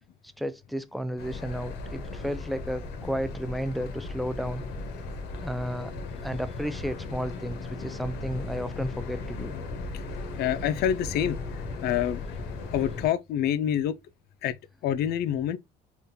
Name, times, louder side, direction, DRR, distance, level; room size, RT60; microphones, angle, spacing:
voice 1, 0.2-5.0 5.4-5.9 6.2-9.6, equal, ahead, 0.3 m, -33 dB
sound 1, 1.2-13.1, left 3 dB, 85° left, 0.8 m, -37 dB
voice 2, 10.4-11.4 11.8-12.2 12.7-13.9 14.4-14.5 14.8-15.6, left 10 dB, 70° left, 0.4 m, -26 dB
3.7 x 2.3 x 2.6 m
cardioid pair, 110°, 17 cm